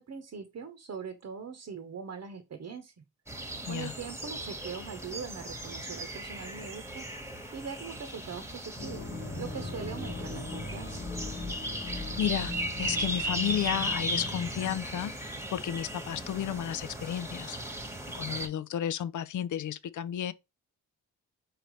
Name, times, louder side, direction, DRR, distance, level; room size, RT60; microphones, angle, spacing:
voice 1, 0.0-3.0 3.7-7.0 7.5-9.1 9.4-11.0, right 6 dB, 45° right, 1.0 m, -41 dB
sound 1, 3.3-18.5, right 1 dB, 5° right, 1.3 m, -37 dB
sound 2, 8.8-14.7, left 2 dB, 25° left, 1.4 m, -39 dB
voice 2, 12.2-17.8 18.1-20.3, left 10 dB, 55° left, 0.5 m, -33 dB
4.3 x 3.9 x 3.1 m
supercardioid pair, 55°, 36 cm